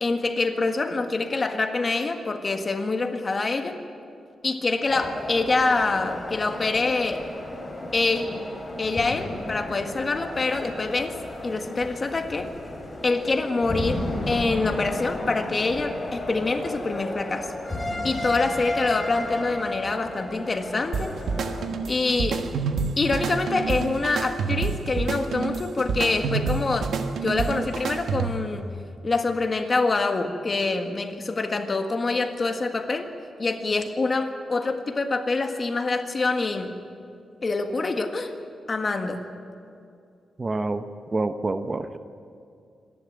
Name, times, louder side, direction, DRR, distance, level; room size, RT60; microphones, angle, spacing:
voice 1, 0.0-3.8 4.4-7.3 7.9-8.4 8.8-11.2 11.4-12.5 13.0-17.5 18.0-21.1 21.9-22.5 23.0-26.9 27.2-28.7 29.0-33.1 33.4-36.8 37.4-38.3 38.7-39.2, left 3 dB, 35° left, 5 dB, 1.7 m, -25 dB
sound 1, 4.9-21.7, left 1 dB, 20° left, 4.0 m, -33 dB
sound 2, 20.9-28.5, right 5 dB, 80° right, 1.4 m, -28 dB
voice 2, 40.4-40.8 41.1-42.0, right 2 dB, 30° right, 10 dB, 0.8 m, -27 dB
25.5 x 11.5 x 9.3 m, 2.4 s
cardioid pair, 95°, 0 cm